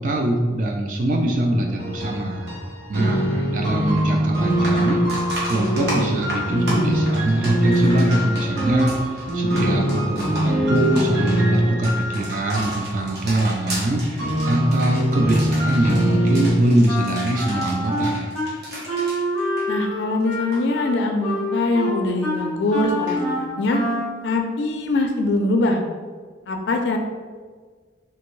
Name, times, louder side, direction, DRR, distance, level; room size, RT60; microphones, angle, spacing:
voice 1, 0.0-2.5 2.9-5.0 5.5-14.0 14.4-18.3, right 1 dB, 45° right, 1 dB, 0.3 m, -23 dB
sound 1, 1.8-16.5, right 1 dB, 80° right, 1.1 m, -23 dB
sound 2, 4.0-4.1 4.5-20.1 20.3-20.6 23.1-23.2, right 1 dB, 60° right, 1.0 m, -34 dB
voice 2, 9.4-9.8 19.7-23.8 24.2-25.8 26.5-27.0, left 2 dB, 70° left, 4 dB, 0.4 m, -23 dB
Wind instrument woodwind instrument, 16.9-18.5 18.9-24.2, equal, ahead, 0.7 m, -27 dB
3.4 x 2.6 x 3.0 m, 1.5 s
head